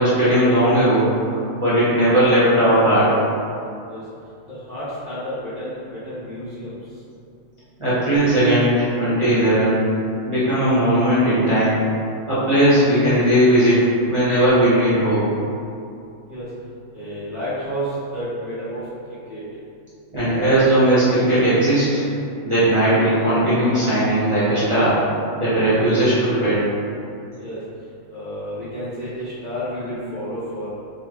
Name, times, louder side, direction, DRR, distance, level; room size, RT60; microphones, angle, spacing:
voice 1, 0.0-3.1 7.8-9.9 10.2-11.9 12.3-15.3 20.1-22.0 22.4-25.0 25.4-26.7, right 1 dB, 25° right, -14 dB, 1.1 m, -17 dB
voice 2, 4.5-6.8 16.3-16.5 16.9-18.8 19.3-19.4 27.4-27.6 28.1-30.7, equal, 30° left, -13 dB, 1.4 m, -30 dB
3.7 x 3.0 x 3.2 m, 2.5 s
omnidirectional pair, 1.4 m